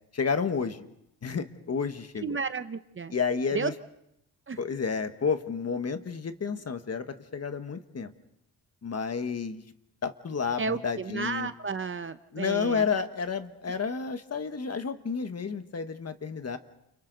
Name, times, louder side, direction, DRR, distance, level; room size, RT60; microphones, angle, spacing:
voice 1, 0.1-0.9 1.2-2.4 3.1-3.7 4.6-8.1 8.8-9.6 10.0-11.5 12.3-16.6, left 5 dB, 40° left, 9 dB, 1.4 m, -31 dB
voice 2, 2.2-3.1 3.5-3.7 4.5-4.6 10.6-12.9, right 4 dB, 35° right, 11 dB, 0.7 m, -32 dB
29.5 x 29.0 x 4.0 m, 0.80 s
wide cardioid pair, 120°, 37 cm